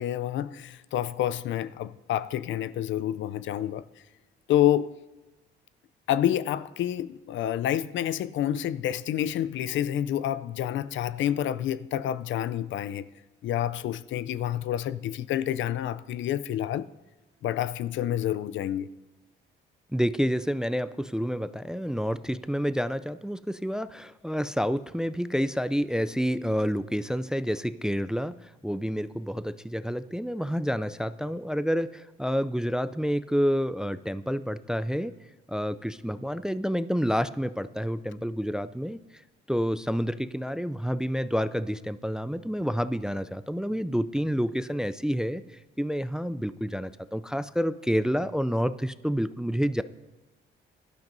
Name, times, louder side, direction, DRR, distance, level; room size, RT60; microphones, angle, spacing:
voice 1, 0.0-3.8 4.5-5.0 6.1-13.1 13.4-16.9 17.4-18.9, left 11 dB, 75° left, 0.4 m, -28 dB
voice 2, 19.9-35.1 35.5-39.2 39.5-49.8, equal, 5° right, 0.3 m, -29 dB
17.5 x 12.0 x 2.6 m
cardioid pair, 90°, 20 cm